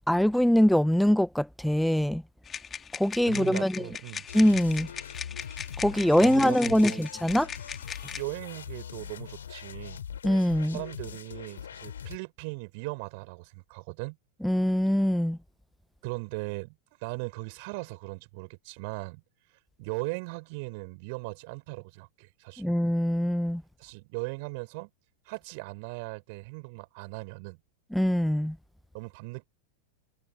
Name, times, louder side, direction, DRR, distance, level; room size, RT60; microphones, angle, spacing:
voice 1, 0.1-2.2 2.9-3.9 4.3-4.9 5.8-7.5 10.2-10.8 14.4-15.4 22.6-23.6 27.9-28.6, equal, ahead, 1.1 m, -23 dB
sound 1, 2.4-8.2, left 7 dB, 20° left, 2.3 m, -39 dB
voice 2, 3.3-4.3 6.2-7.0 8.2-10.0 10.7-14.2 16.0-16.8 17.0-19.2 19.8-22.7 23.8-24.9 25.3-27.6 28.9-29.5, right 30 dB, 45° right, 5.7 m, -38 dB
sound 2, 4.3-12.2, left 8 dB, 65° left, 3.3 m, -41 dB
figure-of-eight pair, 90°, 0 cm